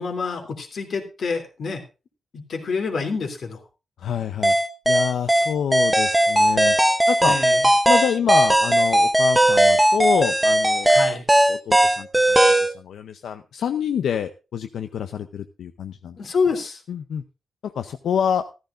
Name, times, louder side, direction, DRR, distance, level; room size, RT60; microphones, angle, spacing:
voice 1, 0.0-1.8 2.3-3.6 7.2-7.6 10.9-11.2 16.2-16.8, left 5 dB, 60° left, 4 dB, 3.0 m, -27 dB
voice 2, 4.0-4.6 4.9-6.7 7.1-7.4 7.9-11.0 11.5-16.2 16.9-17.2 17.6-18.4, left 8 dB, 90° left, 9 dB, 0.7 m, -27 dB
sound 1, 4.4-12.7, right 1 dB, 10° right, 0.9 m, -18 dB
14.5 x 14.0 x 2.6 m, 0.30 s
wide cardioid pair, 135°, 0 cm